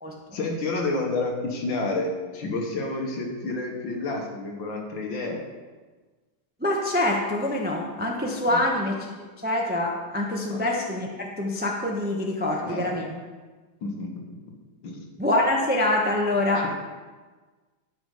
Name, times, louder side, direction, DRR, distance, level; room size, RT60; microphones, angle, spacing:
voice 1, 0.3-5.4 8.2-8.7 10.5-10.7 12.5-13.0 13.8-14.4 14.8-15.1, left 2 dB, 65° left, 1 dB, 2.1 m, -30 dB
voice 2, 6.6-8.9 9.4-13.0 15.2-16.7, left 1 dB, 10° right, -1 dB, 0.7 m, -25 dB
12.0 x 6.4 x 4.9 m, 1.3 s
omnidirectional pair, 2.3 m